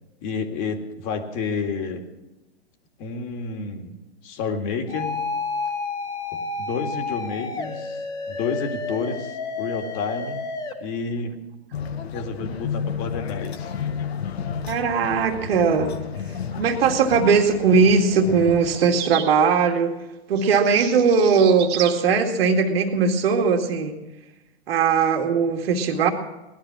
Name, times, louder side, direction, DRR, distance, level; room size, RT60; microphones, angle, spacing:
voice 1, 0.2-2.0 3.0-4.0 4.2-5.2 6.3-10.5 10.8-11.4 12.1-13.7, left 4 dB, 40° left, 5 dB, 2.2 m, -30 dB
sound 1, 4.9-10.7, left 4 dB, 10° left, 1.6 m, -30 dB
sound 2, 11.7-18.9, left 7 dB, 75° left, 1.4 m, -32 dB
voice 2, 14.7-15.9 16.6-19.9 20.3-24.0 24.7-26.1, right 5 dB, 65° right, 4 dB, 2.3 m, -19 dB
sound 3, 18.7-19.4 20.4-22.0, right 10 dB, 30° right, 1.4 m, -33 dB
18.5 x 11.5 x 6.2 m, 1.0 s
hypercardioid pair, 130°, 32 cm